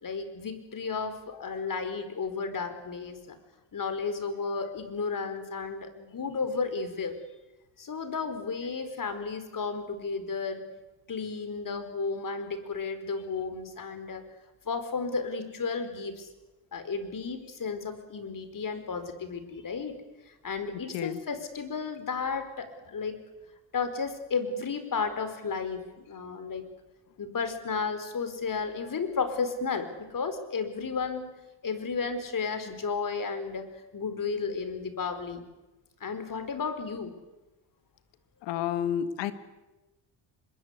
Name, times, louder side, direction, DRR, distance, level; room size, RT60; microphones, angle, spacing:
voice 1, 0.0-3.4 3.7-7.2 7.8-10.6 11.1-14.2 14.6-16.3 16.7-20.0 20.3-23.2 23.7-26.7 27.2-31.3 31.6-35.4 36.0-37.1, left 5 dB, 50° left, 10 dB, 4.7 m, -33 dB
voice 2, 38.4-39.3, left 9 dB, 90° left, 12 dB, 1.8 m, -30 dB
25.5 x 22.0 x 8.3 m, 1.1 s
supercardioid pair, 65°, 42 cm